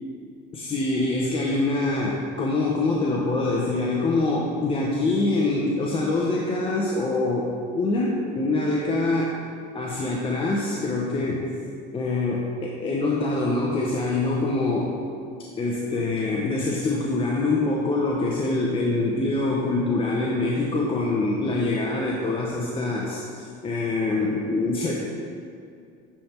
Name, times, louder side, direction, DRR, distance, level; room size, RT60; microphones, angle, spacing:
voice 1, 0.5-9.3 9.7-11.5 11.9-15.0 15.6-24.9, left 2 dB, 25° left, -3 dB, 0.8 m, -25 dB
9.9 x 3.4 x 4.4 m, 2.3 s
supercardioid pair, 115°, 20 cm